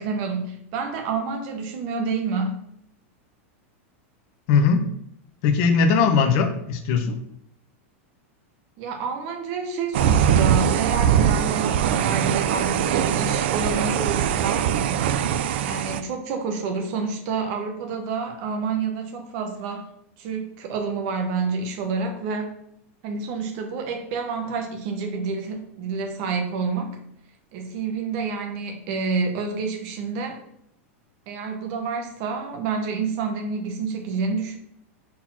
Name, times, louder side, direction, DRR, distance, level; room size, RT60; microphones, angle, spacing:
voice 1, 0.0-2.6 8.8-14.8 15.6-19.8 20.2-22.5 23.0-27.0 27.5-30.4 31.3-34.6, right 4 dB, 35° right, 4 dB, 0.9 m, -28 dB
voice 2, 4.5-4.8 5.4-7.2, left 5 dB, 35° left, 6 dB, 0.8 m, -19 dB
sound 1, 9.9-16.0, right 9 dB, 50° right, 0.3 m, -21 dB
4.3 x 4.1 x 5.7 m, 0.75 s
supercardioid pair, 175°, 7 cm